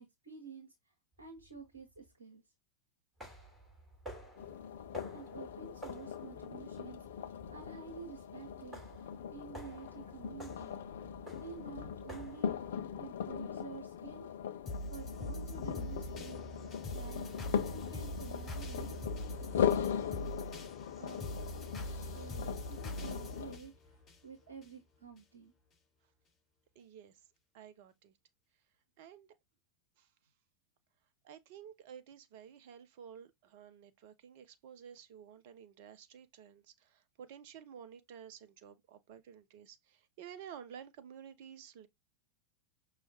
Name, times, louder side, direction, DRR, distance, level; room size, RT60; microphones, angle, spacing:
voice 1, 0.0-2.4 4.2-4.3 5.1-10.8 11.4-14.3 14.9-17.3 17.7-19.0 19.4-19.5 21.0-21.3 22.1-25.5, right 5 dB, 75° right, 1.4 m, -50 dB
sound 1, 1.2-2.1 3.2-12.8, right 1 dB, 10° right, 3.0 m, -52 dB
sound 2, 4.4-23.6, left 8 dB, 60° left, 0.4 m, -39 dB
sound 3, 14.6-24.7 25.2-25.3, left 1 dB, 25° left, 3.0 m, -43 dB
voice 2, 26.8-27.1 27.5-28.1 29.0-29.3 30.0-30.1 31.2-41.9, right 8 dB, 50° right, 0.5 m, -52 dB
5.6 x 3.0 x 2.8 m
figure-of-eight pair, 90°, 0 cm